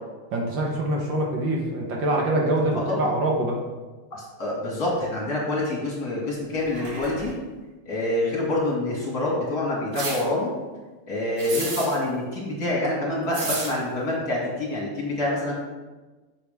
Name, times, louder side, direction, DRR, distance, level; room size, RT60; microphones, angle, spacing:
voice 1, 0.3-3.7, right 1 dB, 60° right, 0 dB, 1.7 m, -25 dB
voice 2, 2.7-3.1 4.1-7.3 7.9-10.5 11.1-15.5, left 1 dB, 45° left, -3 dB, 2.5 m, -26 dB
sound 1, 6.4-7.5, equal, 85° right, 3.0 m, -40 dB
sound 2, 9.9-10.2 11.4-12.0 13.3-13.7, right 3 dB, 45° right, 1.5 m, -30 dB
9.5 x 7.1 x 3.5 m, 1.2 s
omnidirectional pair, 2.4 m